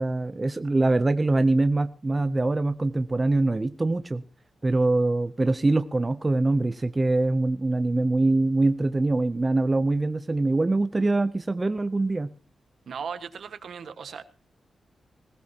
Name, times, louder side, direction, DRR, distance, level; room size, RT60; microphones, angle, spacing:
voice 1, 0.0-4.2 4.6-12.3, right 2 dB, 20° right, 11 dB, 0.6 m, -23 dB
voice 2, 12.9-14.2, right 6 dB, 70° right, 9 dB, 1.5 m, -37 dB
20.0 x 17.0 x 2.9 m, 0.38 s
wide cardioid pair, 120°, 0 cm